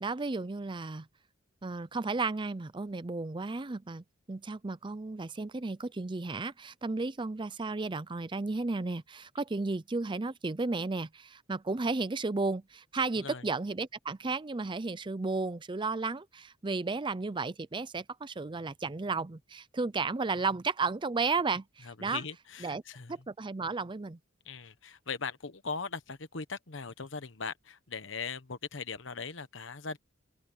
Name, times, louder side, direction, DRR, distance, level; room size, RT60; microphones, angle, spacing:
voice 1, 0.0-1.1 1.6-22.2 22.6-22.8 23.1-24.2, right 3 dB, 25° right, 0.5 m, -33 dB
voice 2, 21.8-23.1 24.4-30.0, left 5 dB, 65° left, 1.2 m, -39 dB
open air
head